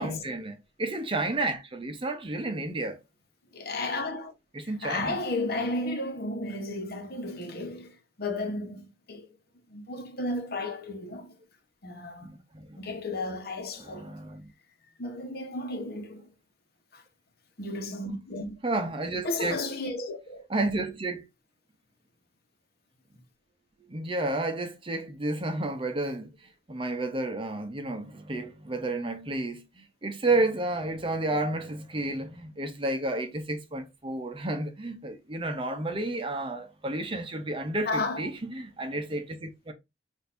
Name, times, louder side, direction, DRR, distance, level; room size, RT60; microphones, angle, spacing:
voice 1, 0.0-3.0 4.5-5.2 12.2-12.8 13.8-14.5 18.6-19.6 20.5-21.2 23.9-26.3 26.7-39.7, right 2 dB, 30° right, 0.7 m, -31 dB
voice 2, 3.5-4.3 4.6-9.4 9.7-11.3 11.8-12.3 12.7-14.2 15.0-16.3 16.9-17.0 17.6-18.5 19.2-20.4 37.8-38.3, left 2 dB, 55° left, 1.1 m, -33 dB
6.3 x 2.7 x 2.6 m
head